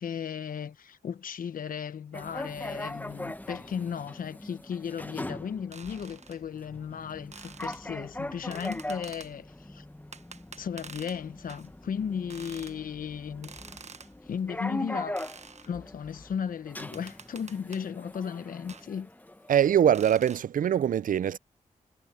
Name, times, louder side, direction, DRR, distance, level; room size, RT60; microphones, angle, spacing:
voice 1, 0.0-9.8 10.6-13.5 14.2-15.2 15.6-19.1, left 7 dB, 80° left, 1.0 m, -35 dB
sound 1, 2.1-19.7, left 1 dB, 10° left, 1.0 m, -41 dB
sound 2, 5.7-6.4 7.3-7.8 8.5-9.3 10.1-11.2 11.5-11.7 12.3-12.8 13.4-14.1 15.2-15.7 16.8-17.9 18.7-18.9 19.9-20.4, right 5 dB, 55° right, 1.1 m, -47 dB
voice 2, 19.5-21.4, right 9 dB, 75° right, 0.5 m, -23 dB
cardioid pair, 55°, 14 cm